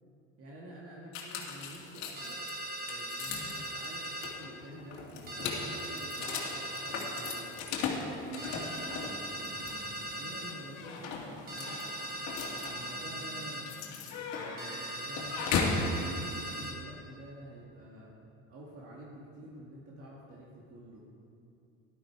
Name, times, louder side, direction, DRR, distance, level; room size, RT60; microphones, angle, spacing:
voice 1, 0.4-2.5 2.8-7.5 7.9-9.8 10.1-11.8 12.7-13.7 14.3-18.1 18.5-21.0, right 1 dB, 50° right, -4 dB, 2.1 m, -49 dB
sound 1, 1.1-15.9, left 5 dB, 65° left, 2.2 m, -38 dB
sound 2, 2.2-4.4 5.3-7.5 8.4-10.6 11.5-13.7 14.6-16.8, right 1 dB, 30° right, 2.5 m, -39 dB
12.5 x 12.0 x 4.6 m, 2.7 s
supercardioid pair, 110°, 30 cm